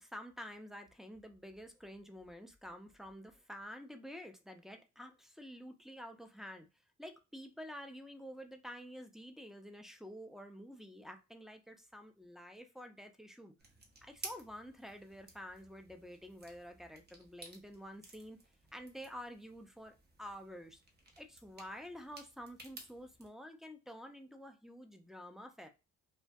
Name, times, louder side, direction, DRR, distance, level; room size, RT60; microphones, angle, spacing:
voice 1, 0.0-6.7 7.0-13.5 14.0-18.4 18.7-20.8 21.2-25.7, equal, ahead, 0.3 m, -49 dB
sound 1, 13.6-23.3, right 2 dB, 35° right, 0.7 m, -55 dB
2.2 x 2.1 x 2.5 m
cardioid pair, 90°, 30 cm